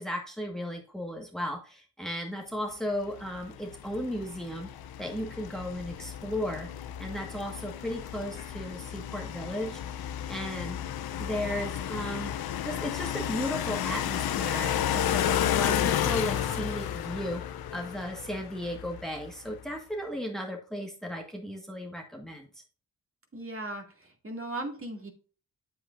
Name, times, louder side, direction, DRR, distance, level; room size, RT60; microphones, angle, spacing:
voice 1, 0.0-4.7 5.0-6.7 7.0-10.8 11.2-12.3 12.6-17.4 17.7-22.5, equal, ahead, 2 dB, 1.6 m, -35 dB
sound 1, 3.2-19.3, left 10 dB, 65° left, 0.7 m, -32 dB
voice 2, 23.3-25.1, right 2 dB, 35° right, 2 dB, 2.5 m, -37 dB
8.4 x 7.6 x 2.6 m, 0.38 s
supercardioid pair, 45°, 39 cm